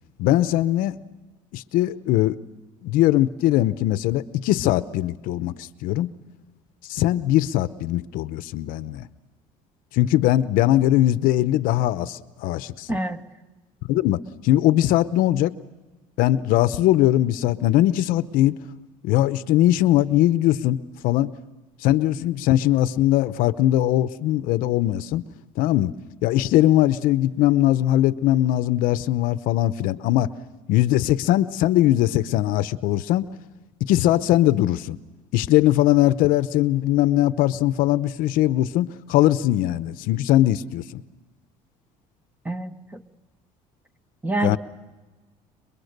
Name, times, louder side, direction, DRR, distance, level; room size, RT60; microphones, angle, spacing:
voice 1, 0.2-0.9 1.5-2.4 2.8-6.1 6.9-9.0 9.9-13.0 13.9-15.5 16.2-18.6 19.0-20.8 21.0-21.3 21.8-25.2 25.6-25.9 26.2-30.3 30.7-33.2 33.8-35.0 35.3-41.0 44.4-44.6, left 14 dB, 75° left, 14 dB, 0.8 m, -20 dB
voice 2, 12.9-13.2 42.4-43.0 44.2-44.6, right 2 dB, 10° right, 8 dB, 1.4 m, -26 dB
29.5 x 22.0 x 6.7 m, 1.2 s
cardioid pair, 110°, 15 cm